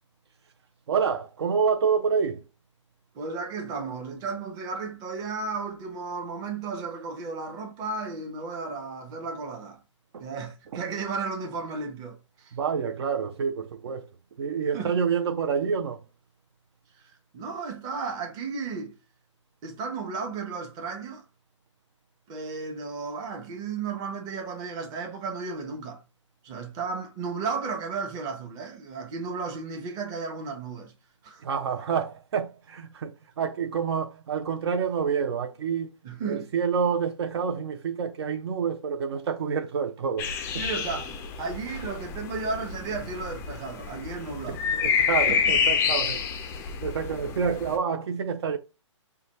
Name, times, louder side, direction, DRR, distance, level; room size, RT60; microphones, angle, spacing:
voice 1, 0.9-2.4 10.1-10.2 10.7-10.8 12.5-14.1 14.4-16.0 31.4-35.9 36.3-40.6 44.5-46.2 46.8-48.6, right 6 dB, 55° right, 0.6 m, -28 dB
voice 2, 3.1-9.8 10.2-12.6 14.7-14.9 17.0-17.1 17.3-19.0 19.6-21.2 22.3-26.0 26.4-30.9 31.2-31.4 36.0-36.5 40.5-44.7 45.3-45.6, right 4 dB, 25° right, 0.9 m, -34 dB
sound 1, 40.2-47.8, left 7 dB, 15° left, 0.4 m, -28 dB
4.9 x 2.2 x 2.9 m
hypercardioid pair, 135°, 16 cm